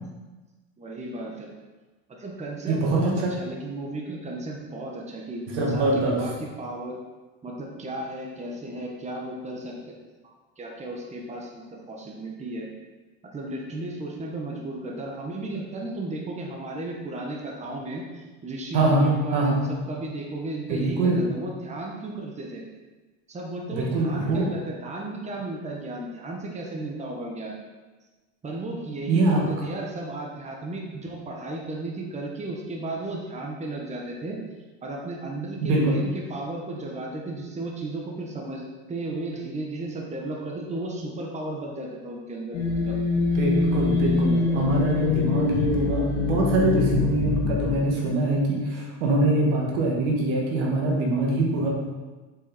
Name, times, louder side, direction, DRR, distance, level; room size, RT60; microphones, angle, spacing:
voice 1, 0.8-1.5 2.1-7.0 7.4-9.8 10.2-12.7 13.3-22.6 23.3-27.5 28.4-34.4 34.8-42.6 42.8-43.0, right 2 dB, 20° right, -1 dB, 1.3 m, -34 dB
voice 2, 2.7-3.3 5.5-6.2 18.7-19.1 19.3-19.6 20.7-21.3 23.7-24.5 29.1-29.4 35.6-36.0 43.3-51.7, right 2 dB, 80° right, -1 dB, 2.2 m, -23 dB
sound 1, 42.5-47.8, left 4 dB, 55° left, 1.8 m, -24 dB
7.5 x 5.6 x 4.2 m, 1.2 s
supercardioid pair, 120°, 35 cm